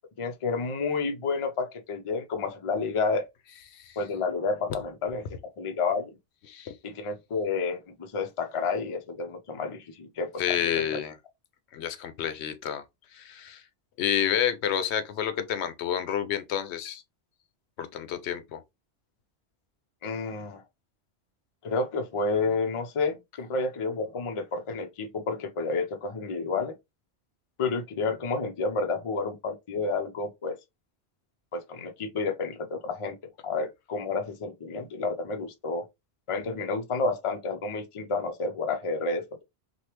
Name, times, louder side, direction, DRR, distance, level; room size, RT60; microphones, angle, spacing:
voice 1, 0.2-3.3 4.0-5.3 5.6-6.2 6.8-11.0 20.0-20.6 21.6-26.7 27.6-30.6 31.5-33.2 33.4-35.9 36.3-39.2, left 4 dB, 40° left, 0.5 m, -30 dB
voice 2, 10.4-11.1 11.7-12.8 13.1-13.6 14.0-17.0 17.8-18.6, left 9 dB, 85° left, 0.9 m, -29 dB
3.2 x 2.3 x 2.8 m
omnidirectional pair, 1.1 m